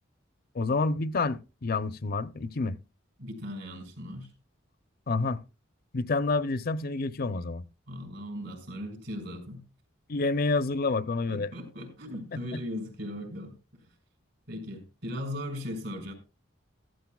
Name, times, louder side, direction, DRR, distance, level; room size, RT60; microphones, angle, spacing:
voice 1, 0.5-2.8 5.1-5.4 5.9-7.6 10.1-11.5 12.5-12.6, left 3 dB, 50° left, 0.6 m, -28 dB
voice 2, 3.2-4.3 7.9-9.6 11.3-13.9 14.5-16.1, left 1 dB, 65° right, 5.0 m, -38 dB
14.0 x 14.0 x 2.3 m
head